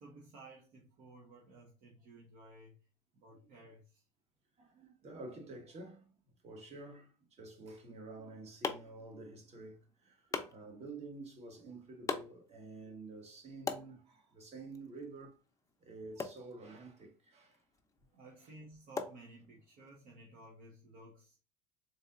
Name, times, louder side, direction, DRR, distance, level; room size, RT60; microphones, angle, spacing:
voice 1, 0.0-4.0 18.1-21.4, right 2 dB, 55° right, 0.8 m, -56 dB
voice 2, 4.6-6.1 6.4-15.3 15.8-17.6 18.4-18.5, right 2 dB, 40° right, 1.4 m, -50 dB
sound 1, 8.0-19.9, left 5 dB, 20° left, 0.5 m, -46 dB
3.9 x 2.8 x 2.4 m
supercardioid pair, 95°, 16 cm